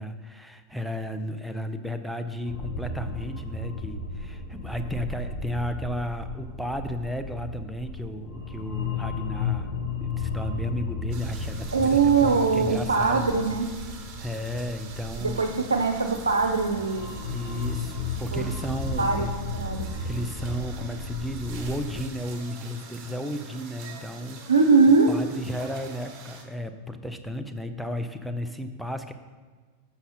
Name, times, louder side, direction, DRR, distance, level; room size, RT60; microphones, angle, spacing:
voice 1, 0.0-13.4 14.2-15.5 17.3-19.3 20.0-24.4 24.8-29.1, equal, ahead, 7 dB, 0.5 m, -33 dB
sound 1, 2.5-22.0, left 3 dB, 30° left, 2.0 m, -34 dB
sound 2, 11.1-26.4, right 5 dB, 35° right, 1.2 m, -46 dB
voice 2, 11.7-13.7 15.2-17.2 18.3-18.5 19.0-19.3 19.5-19.9 24.5-25.1, right 4 dB, 75° right, 4 dB, 0.5 m, -21 dB
7.1 x 6.7 x 4.1 m, 1.5 s
figure-of-eight pair, 90°, 0 cm